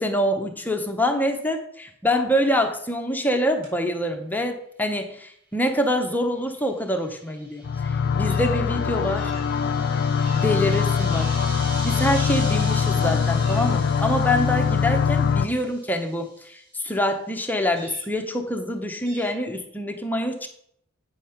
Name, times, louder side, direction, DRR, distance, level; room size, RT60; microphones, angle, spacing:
voice 1, 0.0-9.3 10.3-11.3 11.5-20.5, left 1 dB, 10° left, 4 dB, 0.7 m, -25 dB
sound 1, 3.4-3.7 8.2-8.6 9.1-9.5 10.2-10.5 11.1-11.5 12.1-12.4 13.4-13.8 17.7-18.1 19.0-19.4, right 3 dB, 80° right, 4.1 m, -45 dB
sound 2, 6.6-16.4, right 1 dB, 45° right, 2.3 m, -40 dB
sound 3, 7.6-15.5, left 6 dB, 55° left, 0.4 m, -23 dB
8.5 x 5.2 x 5.7 m, 0.69 s
head